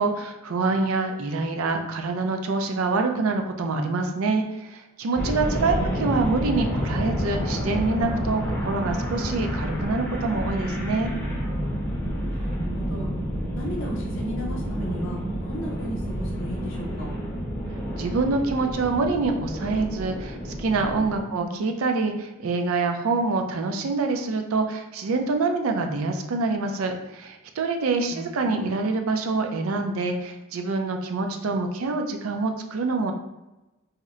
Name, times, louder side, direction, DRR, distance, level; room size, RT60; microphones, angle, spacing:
voice 1, 0.0-11.1 18.0-33.1, right 3 dB, 80° right, 5 dB, 0.4 m, -26 dB
sound 1, 5.2-21.2, equal, 10° left, 0.6 m, -29 dB
voice 2, 5.5-6.0 12.3-13.1 13.6-17.1 21.2-21.6 28.1-28.7 31.2-31.4, right 1 dB, 60° left, -1 dB, 0.7 m, -35 dB
2.8 x 2.1 x 3.6 m, 1.0 s
head